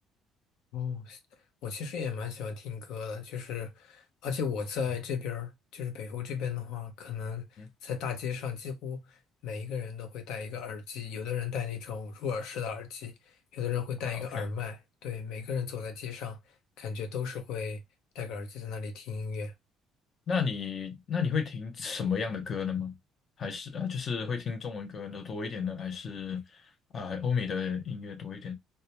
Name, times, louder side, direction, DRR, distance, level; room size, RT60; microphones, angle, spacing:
voice 1, 0.7-1.2 1.6-9.2 9.4-13.1 13.5-16.4 16.8-17.8 18.1-19.5, left 6 dB, 65° left, 0.6 m, -35 dB
voice 2, 14.0-14.5 20.3-23.0 23.4-28.5, left 6 dB, 30° left, 0.5 m, -33 dB
2.2 x 2.1 x 2.8 m
cardioid pair, 175°, 0 cm